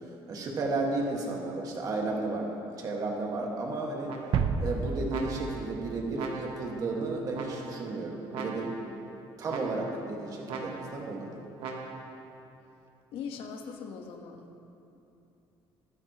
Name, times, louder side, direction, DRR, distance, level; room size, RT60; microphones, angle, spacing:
voice 1, 0.0-2.5 2.8-4.1 4.6-8.7 9.4-11.4, right 3 dB, 40° right, 0 dB, 1.8 m, -33 dB
sound 1, 4.1-4.6 5.1-5.7 6.2-6.8 7.3-7.9 8.3-9.0 9.5-10.1 10.5-11.1 11.6-12.2, right 4 dB, 70° right, 1.4 m, -40 dB
sound 2, 4.3-6.8, right 5 dB, 55° right, 0.6 m, -31 dB
voice 2, 13.1-14.6, left 6 dB, 75° left, 4 dB, 1.3 m, -40 dB
22.0 x 9.8 x 3.0 m, 2.8 s
cardioid pair, 165°, 10 cm